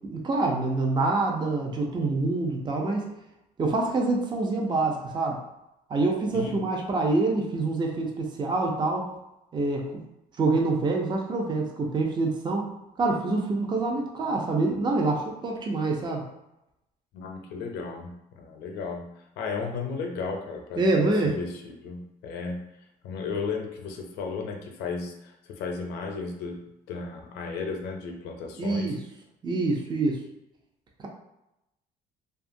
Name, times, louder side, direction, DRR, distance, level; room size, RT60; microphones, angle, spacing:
voice 1, 0.1-3.1 3.6-5.4 5.9-9.1 9.5-10.0 10.4-12.7 13.0-16.3 20.8-21.4 28.6-29.0 29.4-30.2, right 3 dB, 25° right, 0 dB, 0.5 m, -26 dB
voice 2, 17.1-19.1 19.4-22.7 23.0-26.6 26.9-28.9, left 4 dB, 85° left, 3 dB, 0.5 m, -34 dB
2.7 x 2.3 x 2.6 m, 0.88 s
cardioid pair, 110°, 17 cm